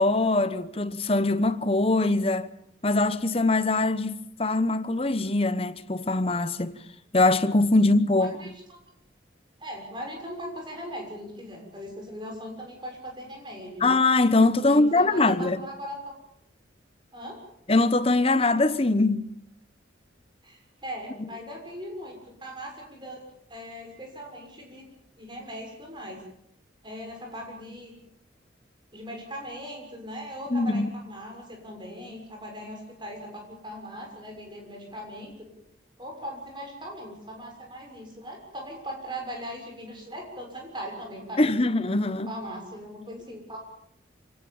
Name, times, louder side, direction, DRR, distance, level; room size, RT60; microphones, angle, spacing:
voice 1, 0.0-2.5 2.8-6.7 7.1-8.4 13.8-15.6 17.7-19.2 30.5-30.9 41.4-42.3, left 2 dB, 30° left, 1.0 m, -22 dB
voice 2, 9.6-13.9 14.6-16.1 17.1-17.4 20.4-23.2 23.5-24.8 25.1-26.2 26.8-27.9 28.9-35.5 36.0-41.5 42.2-43.6, equal, 25° right, 6.6 m, -39 dB
27.0 x 17.5 x 7.2 m
head